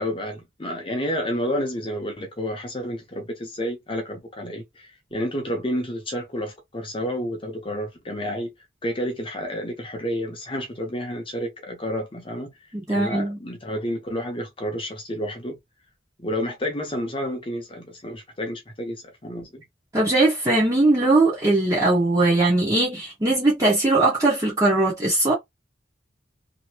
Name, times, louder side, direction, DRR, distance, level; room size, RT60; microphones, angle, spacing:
voice 1, 0.0-8.5 8.8-12.5 12.9-15.6 16.2-19.6, equal, 30° left, 0.9 m, -30 dB
voice 2, 12.7-13.4 19.9-25.3, right 2 dB, 20° right, 1.1 m, -20 dB
2.9 x 2.7 x 2.8 m
head